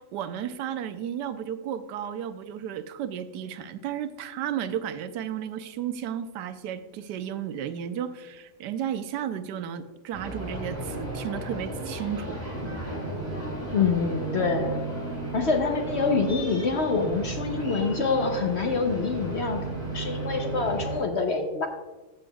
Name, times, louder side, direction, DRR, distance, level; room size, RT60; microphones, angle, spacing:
voice 1, 0.0-12.4, right 9 dB, 85° right, 11 dB, 1.2 m, -33 dB
sound 1, 10.1-21.0, right 2 dB, 25° right, 3.3 m, -34 dB
voice 2, 13.7-14.8 15.3-21.7, left 4 dB, 55° left, 3 dB, 0.8 m, -26 dB
14.0 x 7.7 x 2.3 m, 1.2 s
omnidirectional pair, 1.8 m